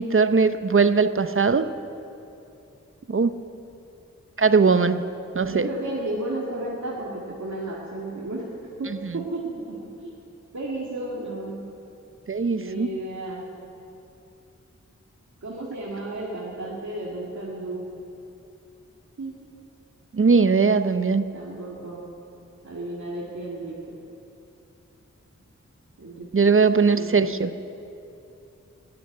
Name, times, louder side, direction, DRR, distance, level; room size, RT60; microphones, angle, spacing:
voice 1, 0.0-1.7 3.1-3.3 4.4-5.0 5.3-5.7 12.3-13.0 20.1-21.2 26.3-27.5, right 4 dB, 45° right, 11 dB, 0.7 m, -20 dB
voice 2, 5.5-8.5 8.8-10.2 10.5-11.7 12.6-13.5 15.4-17.9 19.2-19.3 21.3-22.0 22.6-23.8 26.0-26.6 26.9-27.3, right 2 dB, 70° right, -5 dB, 2.2 m, -33 dB
13.5 x 10.5 x 9.6 m, 2.8 s
wide cardioid pair, 55°, 30 cm